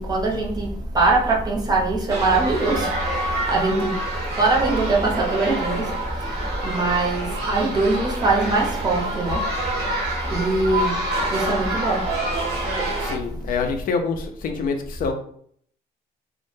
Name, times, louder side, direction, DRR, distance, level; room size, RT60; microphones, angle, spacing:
voice 1, 0.0-13.5, right 2 dB, 25° right, 0.6 m, -23 dB
sound 1, 2.1-13.2, right 1 dB, 65° right, 0.8 m, -27 dB
voice 2, 13.0-15.1, left 5 dB, 55° left, 0.4 m, -26 dB
2.1 x 2.1 x 3.0 m
cardioid pair, 110°, 17 cm